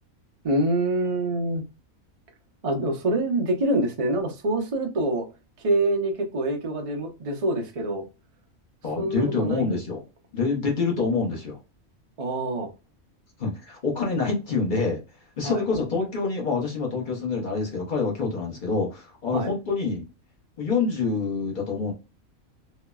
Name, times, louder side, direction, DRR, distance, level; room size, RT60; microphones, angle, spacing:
voice 1, 0.4-1.6 2.6-5.3 5.6-8.1 9.0-9.8 12.2-12.7 15.4-15.6 19.3-19.5, right 1 dB, 65° right, 0.3 m, -25 dB
voice 2, 8.8-10.0 10.3-11.6 13.4-15.0 15.4-20.1 20.6-21.9, left 4 dB, 45° left, 0.8 m, -26 dB
3.0 x 2.0 x 2.2 m
omnidirectional pair, 1.4 m